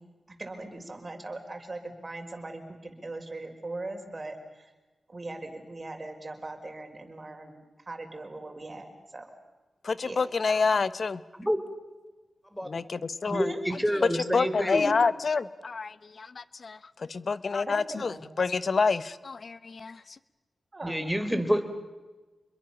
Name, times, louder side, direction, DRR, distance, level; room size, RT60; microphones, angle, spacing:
voice 1, 0.4-4.7 5.1-7.5 7.9-9.3 10.0-10.2 13.3-13.6 17.7-18.4 20.7-21.0, right 2 dB, 35° right, 4 dB, 5.7 m, -40 dB
voice 2, 9.8-11.2 12.6-13.5 13.9-20.0, left 4 dB, 60° left, 16 dB, 1.1 m, -28 dB
voice 3, 13.3-14.9 20.8-21.7, equal, ahead, 9 dB, 4.0 m, -28 dB
29.0 x 22.5 x 7.2 m, 1.2 s
cardioid pair, 65°, 0 cm